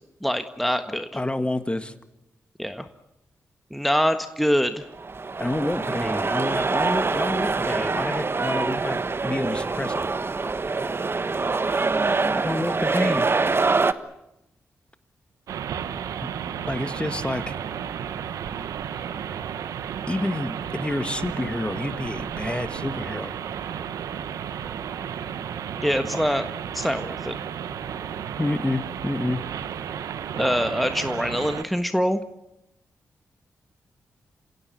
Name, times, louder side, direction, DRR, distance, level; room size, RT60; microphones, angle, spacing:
voice 1, 0.2-1.2 2.6-2.9 3.7-4.8 25.8-26.4 26.7-27.4 30.3-32.2, equal, ahead, 8 dB, 1.5 m, -24 dB
voice 2, 0.9-1.9 5.4-10.0 12.4-13.3 16.2-16.3 16.7-17.6 20.1-23.3 26.1-26.2 28.4-29.4, left 1 dB, 20° left, 11 dB, 1.8 m, -28 dB
sound 1, 4.9-13.9, right 4 dB, 45° right, 1.3 m, -25 dB
sound 2, 15.5-31.6, right 8 dB, 85° right, 1.1 m, -33 dB
27.0 x 16.5 x 9.5 m, 0.89 s
supercardioid pair, 45°, 6 cm